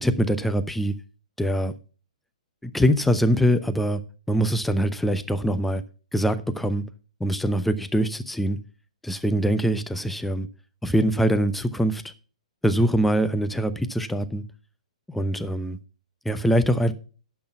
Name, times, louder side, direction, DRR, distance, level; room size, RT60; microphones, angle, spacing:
voice 1, 0.0-1.0 1.4-1.7 2.6-4.0 4.3-5.8 6.1-6.9 7.2-8.6 9.0-10.5 10.8-12.0 12.6-14.4 15.1-15.8 16.2-16.9, equal, 5° left, 0.7 m, -23 dB
10.5 x 6.0 x 5.9 m
figure-of-eight pair, 120°, 4 cm